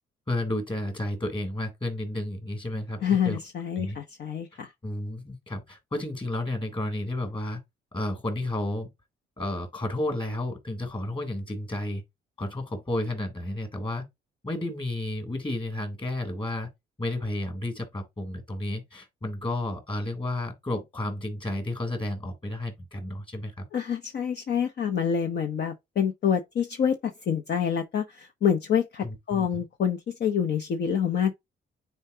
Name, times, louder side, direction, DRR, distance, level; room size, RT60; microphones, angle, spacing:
voice 1, 0.3-3.4 3.8-4.0 4.8-7.6 7.9-8.9 9.4-12.0 12.4-14.1 14.4-16.7 17.0-23.7 29.0-29.6, left 1 dB, 25° left, 3.4 m, -32 dB
voice 2, 3.0-4.7 23.7-31.3, left 8 dB, 60° left, 0.9 m, -27 dB
9.5 x 4.6 x 2.8 m
cardioid pair, 90°, 20 cm